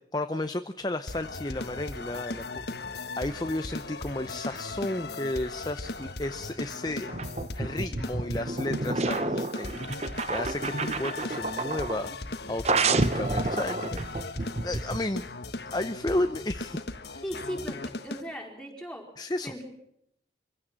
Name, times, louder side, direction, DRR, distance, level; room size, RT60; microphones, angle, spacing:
voice 1, 0.1-2.6 2.9-7.1 7.5-9.8 10.3-12.1 12.5-14.0 14.6-15.3 15.7-16.8 17.1-17.2 19.2-19.5, left 1 dB, 25° left, 9 dB, 0.8 m, -33 dB
sound 1, 1.1-18.2, left 3 dB, 70° left, 1.4 m, -38 dB
sound 2, 7.1-12.1 12.7-15.0, right 3 dB, 35° right, 1.0 m, -30 dB
voice 2, 17.2-19.1 19.4-19.7, equal, 5° left, 0 dB, 4.5 m, -37 dB
25.0 x 16.5 x 7.5 m, 0.74 s
head